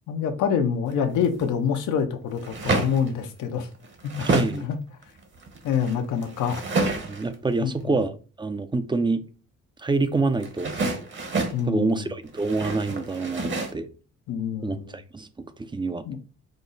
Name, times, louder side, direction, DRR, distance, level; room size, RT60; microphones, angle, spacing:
voice 1, 0.1-3.7 4.0-4.8 5.6-6.6 7.6-8.0 11.5-12.1 14.3-15.0 16.1-16.2, left 7 dB, 80° left, 0.8 m, -26 dB
sound 1, 0.9-1.5 2.3-3.1 3.6-4.6 5.0-7.4 10.4-11.6 12.2-13.7, right 3 dB, 40° right, 1.1 m, -29 dB
voice 2, 4.2-4.7 7.0-9.2 9.8-10.7 11.7-13.9 14.6-16.0, right 3 dB, 15° right, 0.5 m, -27 dB
5.2 x 2.1 x 3.9 m
cardioid pair, 90°, 30 cm